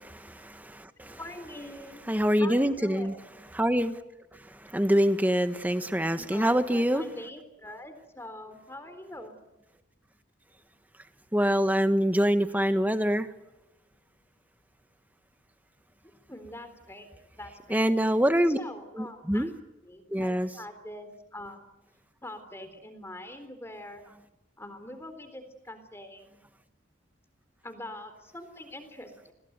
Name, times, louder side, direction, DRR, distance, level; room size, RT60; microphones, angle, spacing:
voice 1, 0.3-1.2 2.1-3.1 3.5-3.9 4.7-7.0 11.3-13.3 17.7-18.6 19.0-19.5 20.1-20.5, equal, 10° right, 9 dB, 1.3 m, -25 dB
voice 2, 1.2-2.0 2.4-3.2 6.2-9.4 13.1-13.2 16.3-17.1 17.3-17.9 18.5-19.5 19.8-21.7 22.2-24.0 24.6-26.4 27.6-29.3, left 1 dB, 15° left, 9 dB, 3.8 m, -43 dB
29.5 x 21.5 x 8.1 m, 0.99 s
head